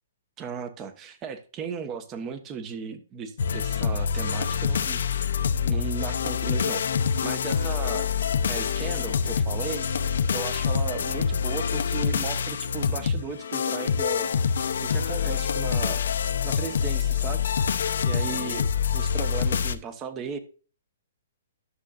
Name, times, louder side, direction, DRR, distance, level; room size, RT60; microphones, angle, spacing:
voice 1, 0.4-5.3 5.6-6.8 7.2-8.1 8.5-9.9 10.3-14.3 14.8-16.1 16.4-17.5 18.0-18.7 18.9-20.4, right 6 dB, 25° right, 10 dB, 1.2 m, -36 dB
sound 1, 3.4-19.8, left 7 dB, 70° left, 0.7 m, -26 dB
11.5 x 6.6 x 2.5 m, 0.36 s
hypercardioid pair, 140°, 0 cm